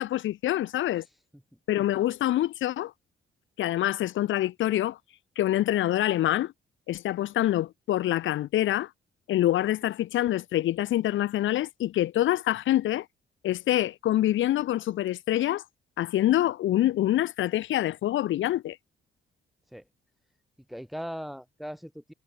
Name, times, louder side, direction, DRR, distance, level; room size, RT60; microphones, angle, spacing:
voice 1, 0.0-1.0 1.7-2.9 3.6-5.0 5.3-6.5 6.9-8.9 9.3-13.0 13.4-15.6 16.0-18.8, left 13 dB, 80° left, 1.7 m, -26 dB
voice 2, 1.0-1.4 19.7-19.9 20.7-22.1, equal, ahead, 7.2 m, -39 dB
cardioid pair, 90°, 20 cm